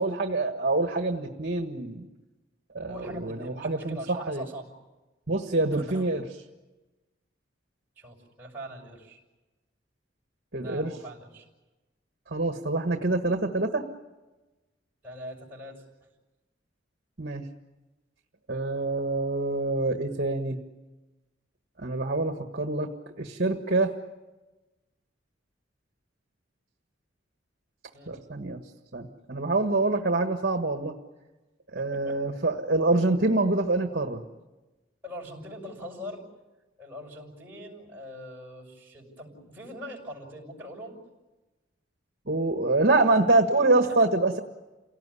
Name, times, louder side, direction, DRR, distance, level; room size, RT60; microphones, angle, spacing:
voice 1, 0.0-2.1 2.7-4.4 5.3-6.2 10.5-10.9 12.3-13.8 17.2-17.4 18.5-20.6 21.8-22.9 23.2-23.9 28.1-28.6 28.9-30.9 31.7-34.2 42.3-44.4, right 2 dB, 55° right, 6 dB, 1.5 m, -26 dB
voice 2, 2.9-4.7 5.7-6.1 8.0-9.2 10.6-11.5 15.0-15.8 27.9-28.1 31.7-32.2 35.0-36.2 36.8-40.9 43.8-44.0, equal, 10° right, -3 dB, 6.6 m, -42 dB
29.0 x 18.0 x 9.9 m, 1.2 s
head